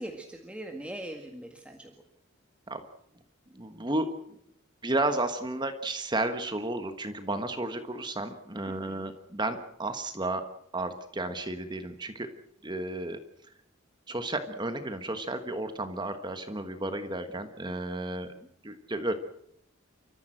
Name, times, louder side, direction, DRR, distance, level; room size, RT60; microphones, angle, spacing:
voice 1, 0.0-2.0 8.6-9.1 18.3-18.5, right 1 dB, 5° right, 2 dB, 1.8 m, -41 dB
voice 2, 3.5-4.1 4.8-10.4 10.7-12.3 12.6-13.2 14.1-18.3 18.6-19.1, right 2 dB, 20° right, 8 dB, 1.3 m, -32 dB
30.0 x 14.5 x 7.7 m, 0.73 s
head